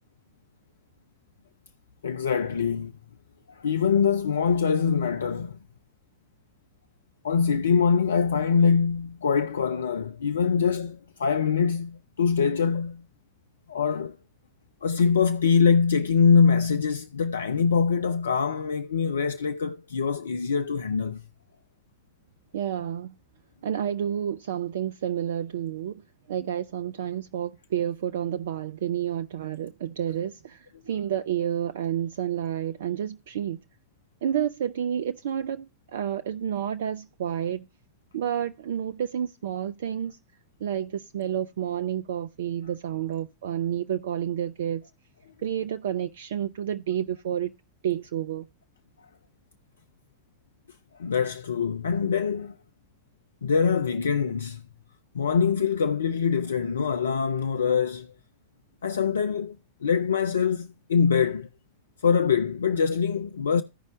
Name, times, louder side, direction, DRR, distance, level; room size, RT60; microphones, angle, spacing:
voice 1, 2.0-2.9 3.5-5.6 7.2-13.0 13.7-14.2 14.8-21.2 51.0-52.6 53.4-54.6 55.1-58.1 58.8-61.5 62.0-63.6, left 6 dB, 70° left, 0.4 m, -24 dB
voice 2, 22.5-23.2 23.6-26.0 26.3-33.6 34.2-37.7 38.1-40.2 40.6-44.8 45.4-47.5 47.8-48.5, right 10 dB, 60° right, 0.3 m, -30 dB
15.0 x 5.3 x 2.9 m
figure-of-eight pair, 90°, 0 cm